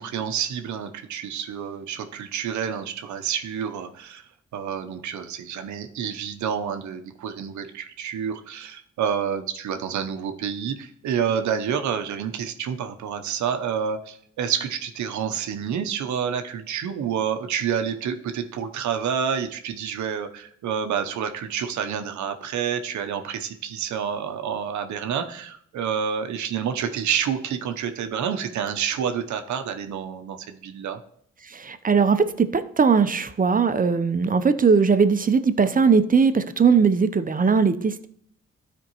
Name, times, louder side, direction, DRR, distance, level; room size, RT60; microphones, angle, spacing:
voice 1, 0.0-4.2 4.5-31.0, right 8 dB, 75° right, 7 dB, 0.8 m, -28 dB
voice 2, 31.4-38.1, right 5 dB, 30° right, 11 dB, 0.7 m, -19 dB
12.5 x 4.5 x 3.0 m, 0.65 s
supercardioid pair, 45°, 29 cm